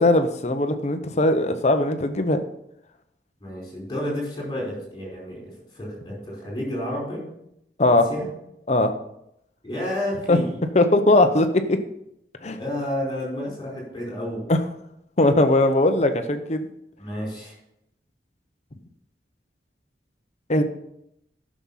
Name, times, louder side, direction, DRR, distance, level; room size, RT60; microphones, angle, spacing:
voice 1, 0.0-2.4 7.8-8.1 8.7-8.9 10.3-10.4 10.7-11.8 12.4-12.6 14.5-14.6 15.2-16.7 20.5-20.6, left 2 dB, 40° left, 8 dB, 0.8 m, -19 dB
voice 2, 3.4-7.2 8.1-8.3 9.6-10.6 12.6-14.5 17.0-17.6, left 1 dB, 25° left, -3 dB, 4.7 m, -31 dB
10.5 x 6.2 x 5.7 m, 0.79 s
head